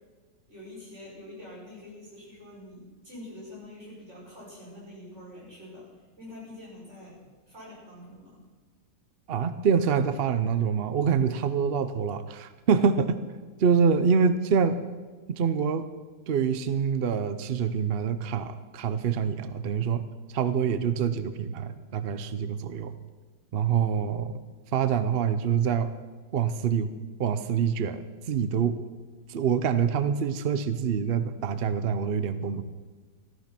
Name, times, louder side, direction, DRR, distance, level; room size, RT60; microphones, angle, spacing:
voice 1, 0.5-5.9 6.2-7.2 7.5-8.4, left 1 dB, 40° right, -5 dB, 6.6 m, -45 dB
voice 2, 9.3-13.2 13.6-14.8 15.3-15.9 16.3-20.0 20.3-23.0 23.5-24.4 24.7-25.9 26.3-26.9 27.2-28.8 29.3-32.6, right 6 dB, 60° right, 12 dB, 0.6 m, -26 dB
14.5 x 13.5 x 6.0 m, 1.4 s
omnidirectional pair, 1.9 m